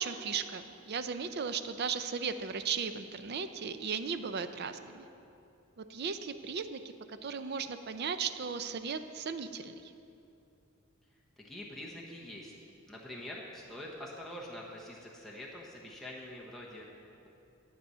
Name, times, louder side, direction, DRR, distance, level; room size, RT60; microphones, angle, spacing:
voice 1, 0.0-5.1 5.8-6.8 7.1-9.9, right 6 dB, 50° right, 10 dB, 0.5 m, -36 dB
voice 2, 11.4-12.5 12.9-17.3, left 1 dB, ahead, -4 dB, 1.0 m, -45 dB
11.0 x 7.7 x 5.6 m, 2.7 s
head